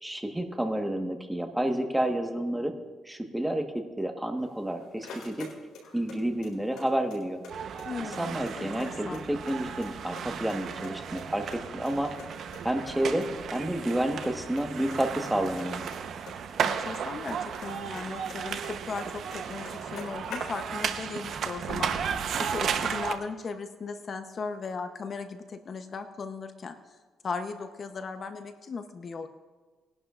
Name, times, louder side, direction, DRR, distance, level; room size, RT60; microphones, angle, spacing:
voice 1, 0.0-2.7 3.1-5.5 5.9-7.4 8.2-11.4 11.7-12.1 12.6-13.2 13.5-15.8, right 1 dB, 5° right, 4 dB, 1.3 m, -30 dB
sound 1, 4.4-6.2 6.4-7.5 7.8-7.9 8.1-9.5 9.8-10.6 10.8-12.3 12.5-12.6 12.9-13.0 13.2-13.3 13.5-13.9 14.2-14.6 14.9-17.3 17.6-19.0 19.3-19.4 19.6-20.9, left 4 dB, 80° left, 4.1 m, -44 dB
sound 2, 7.5-23.1, right 7 dB, 65° right, 0.9 m, -34 dB
voice 2, 7.8-9.3 16.6-27.0 27.2-29.3, left 4 dB, 45° left, 8 dB, 0.8 m, -37 dB
21.5 x 11.0 x 2.5 m, 1.3 s
cardioid pair, 90°, 0 cm